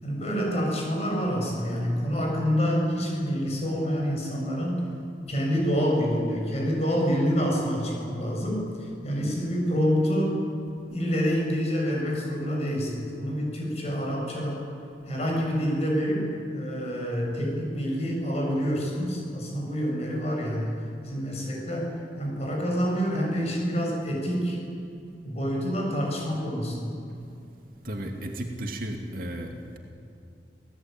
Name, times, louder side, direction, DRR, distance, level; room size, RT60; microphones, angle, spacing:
voice 1, 0.0-4.8 5.3-10.4 10.9-14.7 15.1-24.6 25.2-26.9, equal, 35° left, -1 dB, 7.2 m, -27 dB
voice 2, 27.8-29.8, right 1 dB, 50° right, 2 dB, 2.6 m, -34 dB
28.0 x 17.5 x 9.2 m, 2.6 s
head